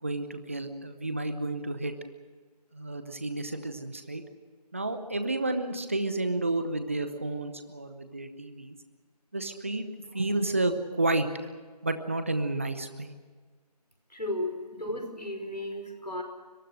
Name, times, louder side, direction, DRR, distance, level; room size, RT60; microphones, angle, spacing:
voice 1, 0.0-1.9 2.7-4.2 4.7-8.8 9.3-11.3 11.8-13.1, right 2 dB, 20° right, 9 dB, 0.9 m, -31 dB
voice 2, 14.1-16.2, left 1 dB, 85° left, 5 dB, 5.4 m, -34 dB
25.0 x 23.0 x 6.4 m, 1.5 s
figure-of-eight pair, 165°, 21 cm